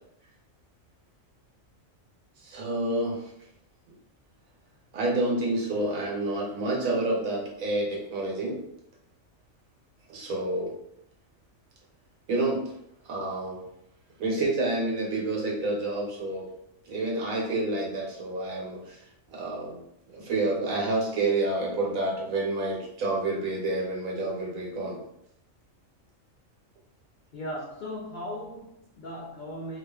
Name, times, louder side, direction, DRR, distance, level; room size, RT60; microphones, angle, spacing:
voice 1, 2.4-3.3 4.9-8.6 10.1-10.7 12.3-12.6 13.0-13.6 14.2-16.5 16.9-19.0 19.3-19.8 20.1-25.0, right 2 dB, 85° right, -2 dB, 1.2 m, -28 dB
voice 2, 27.3-29.8, equal, 75° left, -3 dB, 0.4 m, -37 dB
2.5 x 2.4 x 2.3 m, 0.75 s
omnidirectional pair, 1.4 m